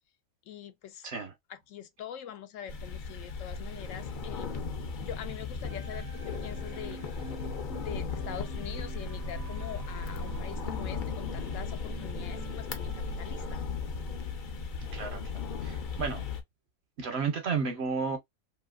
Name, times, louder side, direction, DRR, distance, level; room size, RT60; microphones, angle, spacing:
voice 1, 0.5-1.1 1.5-4.6 5.0-7.0 7.8-13.7, left 10 dB, 80° left, 1.0 m, -44 dB
sound 1, 2.7-16.4, left 4 dB, 55° left, 0.6 m, -36 dB
sound 2, 5.7-13.5, right 3 dB, 25° right, 0.3 m, -47 dB
voice 2, 15.6-16.2 17.0-18.2, right 5 dB, 60° right, 1.1 m, -32 dB
2.8 x 2.8 x 2.3 m
omnidirectional pair, 1.3 m